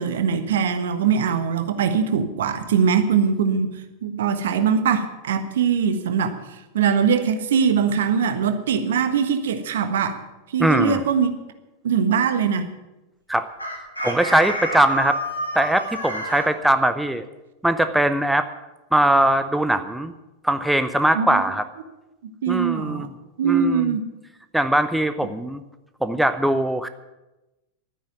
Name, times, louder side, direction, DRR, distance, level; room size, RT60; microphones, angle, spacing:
voice 1, 0.0-3.7 4.0-6.3 6.7-10.2 10.5-11.3 11.8-12.7 21.1-21.4 22.4-23.1 23.4-24.1, right 6 dB, 60° right, 9 dB, 1.3 m, -21 dB
voice 2, 10.6-11.0 13.3-13.5 14.0-15.2 15.5-17.2 17.6-18.5 18.9-20.1 20.4-21.7 22.5-23.1 23.4-23.9 24.5-25.6 26.0-26.9, right 1 dB, 5° right, 10 dB, 0.7 m, -21 dB
Chicken rooster, 13.6-16.5, equal, 90° left, 2.9 m, -28 dB
12.0 x 9.9 x 9.2 m, 1.0 s
figure-of-eight pair, 90°, 0 cm